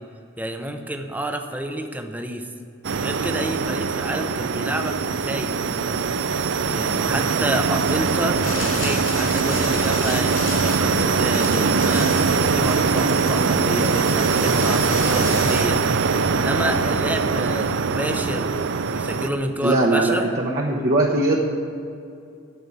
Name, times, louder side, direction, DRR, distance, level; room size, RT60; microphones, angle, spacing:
voice 1, 0.4-2.5 3.0-6.1 6.7-15.8 16.3-20.3, right 1 dB, 10° right, 5 dB, 0.7 m, -29 dB
sound 1, 2.8-19.3, right 5 dB, 60° right, 0.5 m, -22 dB
sound 2, 6.9-7.0 7.7-15.7, left 4 dB, 70° left, 3.0 m, -34 dB
voice 2, 19.6-21.4, right 2 dB, 45° right, -2 dB, 1.0 m, -20 dB
9.0 x 7.8 x 9.3 m, 2.4 s
head